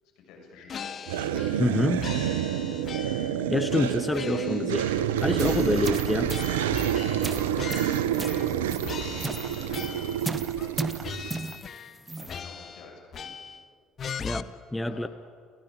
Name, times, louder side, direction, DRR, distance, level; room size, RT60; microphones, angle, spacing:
voice 1, 0.0-0.9 4.0-4.5 8.2-8.3 9.1-11.3 12.2-13.5 14.8-15.1, left 4 dB, 70° left, 0 dB, 7.4 m, -49 dB
sound 1, 0.7-1.7 2.0-3.4 3.7-5.1 5.4-8.6 8.8-10.2 10.6-10.8 11.0-12.0 12.3-13.6 14.0-14.4, left 7 dB, 45° left, 1.1 m, -39 dB
sound 2, 1.1-11.4, right 10 dB, 80° right, 0.8 m, -28 dB
voice 2, 1.6-2.1 3.5-4.8 5.2-6.3 14.2-15.1, left 2 dB, 15° left, 11 dB, 1.0 m, -26 dB
sound 3, 5.2-12.4, right 3 dB, 20° right, 1.0 m, -37 dB
29.5 x 15.5 x 9.1 m, 2.2 s
hypercardioid pair, 60°, 0 cm